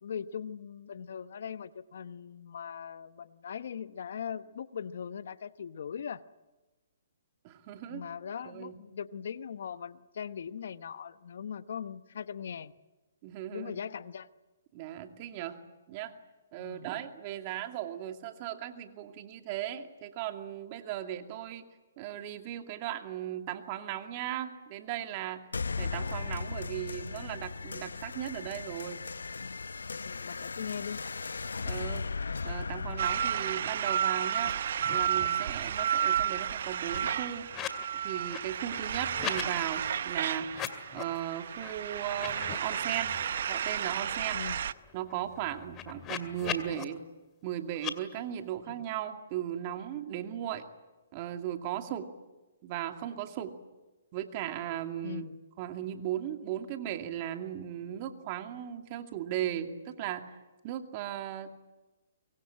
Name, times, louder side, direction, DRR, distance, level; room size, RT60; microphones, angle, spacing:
voice 1, 0.0-6.2 7.9-12.7 13.5-14.3 16.6-16.9 30.0-31.1 44.3-44.6 48.6-48.8 55.0-55.4, left 7 dB, 65° left, 13 dB, 1.0 m, -40 dB
voice 2, 7.4-8.0 8.4-8.7 13.2-13.8 14.7-15.6 15.9-16.1 16.5-21.7 22.0-25.4 25.8-29.0 31.7-32.1 32.4-34.5 34.9-37.5 37.9-40.5 40.9-43.2 43.5-44.4 44.9-47.0 47.4-50.6 51.1-52.1 52.6-53.5 54.1-55.3 55.6-60.4 60.6-61.5, right 11 dB, 35° right, 5 dB, 2.4 m, -37 dB
sound 1, 25.5-34.5, left 4 dB, 85° left, 0.8 m, -37 dB
sound 2, 33.0-44.7, right 9 dB, 60° right, 0.8 m, -32 dB
sound 3, 34.4-34.5 34.8-35.5 35.8-37.9 38.2-39.5 40.4-41.2 41.6-41.7 42.1-43.4 43.8-43.9 44.2-46.8 47.7-47.9, left 10 dB, 20° left, 2.3 m, -41 dB
24.0 x 23.0 x 8.8 m, 1.1 s
hypercardioid pair, 140°, 0 cm